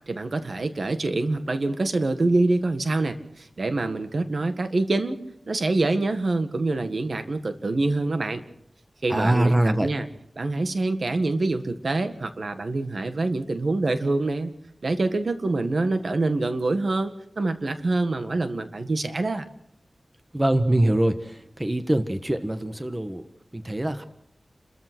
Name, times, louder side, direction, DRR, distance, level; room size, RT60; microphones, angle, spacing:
voice 1, 0.1-5.2 5.5-8.4 9.0-10.1 10.4-14.5 14.8-19.4, right 2 dB, 65° right, 8 dB, 1.8 m, -25 dB
voice 2, 9.1-9.9 20.3-24.0, right 1 dB, 20° right, 9 dB, 1.4 m, -23 dB
29.5 x 14.0 x 6.2 m, 0.73 s
wide cardioid pair, 85°, 0 cm